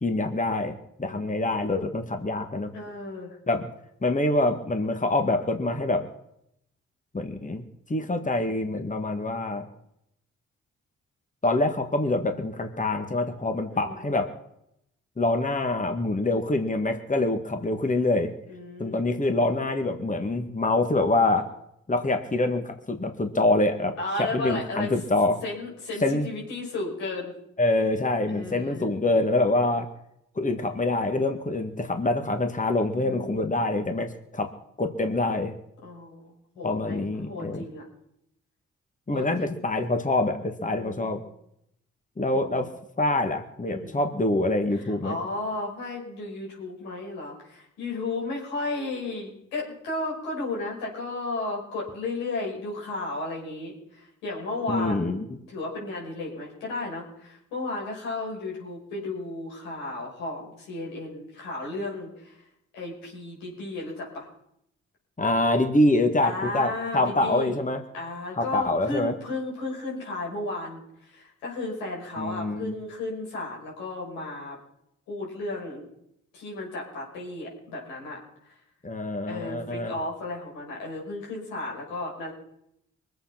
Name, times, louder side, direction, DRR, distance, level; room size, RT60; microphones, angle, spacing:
voice 1, 0.0-2.7 3.5-3.7 4.0-6.1 7.1-7.6 7.9-9.7 11.4-14.3 15.2-18.3 18.8-21.5 21.9-25.4 26.0-26.3 27.6-29.9 30.4-34.5 34.8-35.5 36.6-37.6 39.1-41.2 42.2-42.7 43.0-45.2 54.7-55.2 65.2-67.8 68.4-69.1 72.2-72.7 78.8-79.9, left 2 dB, 25° left, 6 dB, 2.0 m, -25 dB
voice 2, 1.0-1.6 2.7-3.4 13.7-14.0 18.5-19.1 24.0-24.9 25.4-27.3 28.3-29.0 32.9-33.5 35.8-37.8 39.1-39.6 40.6-41.2 42.4-42.7 43.7-44.0 44.8-62.5 62.7-64.3 66.2-67.6 67.9-74.6 75.1-75.8 76.3-78.2 79.3-82.3, left 2 dB, 90° left, -3 dB, 5.8 m, -34 dB
23.5 x 8.2 x 6.0 m, 0.77 s
hypercardioid pair, 40°, 31 cm